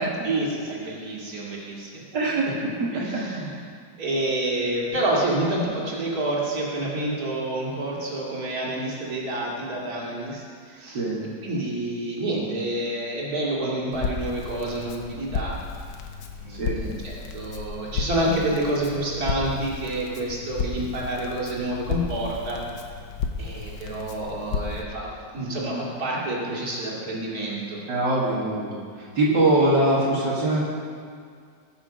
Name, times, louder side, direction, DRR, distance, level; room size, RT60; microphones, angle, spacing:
voice 1, 0.2-2.0 2.4-2.5 2.9-3.5 4.0-11.0 11.4-15.5 16.4-22.6 23.4-27.8, right 1 dB, 55° right, -5 dB, 2.9 m, -28 dB
voice 2, 2.1-2.5 2.8-3.6 10.9-11.2 16.5-16.8 27.9-30.6, right 2 dB, 80° right, -6 dB, 2.4 m, -23 dB
Crackle, 13.9-24.8, left 5 dB, 90° left, 1.6 m, -33 dB
18.5 x 6.9 x 5.2 m, 2.1 s
omnidirectional pair, 1.9 m